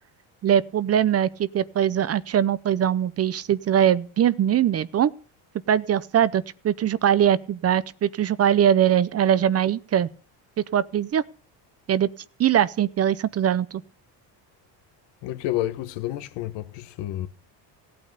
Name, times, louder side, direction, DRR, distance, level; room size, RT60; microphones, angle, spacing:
voice 1, 0.4-5.1 5.7-10.1 10.7-11.2 11.9-12.1 12.4-13.7, right 10 dB, 35° right, 0.7 m, -21 dB
voice 2, 15.2-17.3, left 14 dB, 75° left, 1.4 m, -30 dB
17.0 x 8.7 x 6.7 m
cardioid pair, 130°, 42 cm